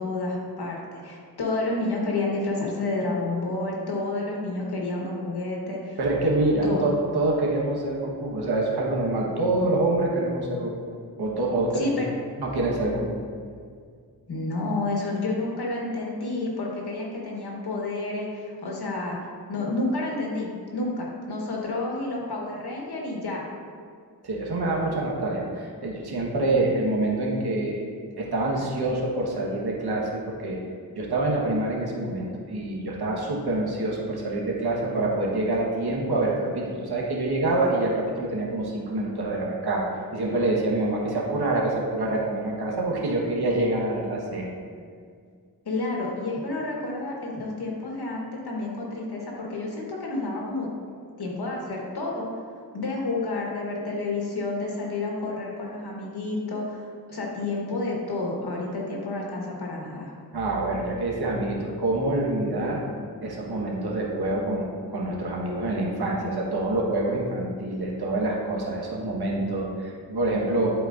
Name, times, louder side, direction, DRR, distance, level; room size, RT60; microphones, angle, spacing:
voice 1, 0.0-6.0 6.6-6.9 11.7-12.1 14.3-23.4 45.6-50.7 51.2-52.3 52.7-60.1, left 2 dB, 80° left, -2 dB, 1.4 m, -30 dB
voice 2, 6.0-10.7 11.2-11.7 12.4-13.0 24.2-27.8 28.2-30.6 30.9-44.5 60.3-62.8 63.2-64.7 64.9-70.7, right 2 dB, 75° right, -3 dB, 1.4 m, -26 dB
11.0 x 4.4 x 2.6 m, 2.1 s
cardioid pair, 65°, 38 cm